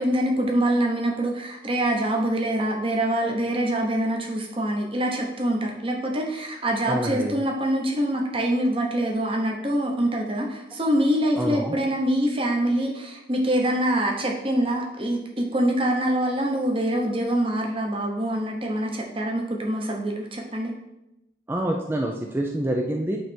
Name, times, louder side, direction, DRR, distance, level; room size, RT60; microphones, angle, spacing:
voice 1, 0.0-20.7, right 1 dB, 30° right, 0 dB, 1.0 m, -25 dB
voice 2, 6.9-7.4 11.4-11.8 21.5-23.2, right 1 dB, 10° right, 1 dB, 0.4 m, -27 dB
8.9 x 3.3 x 4.4 m, 0.91 s
head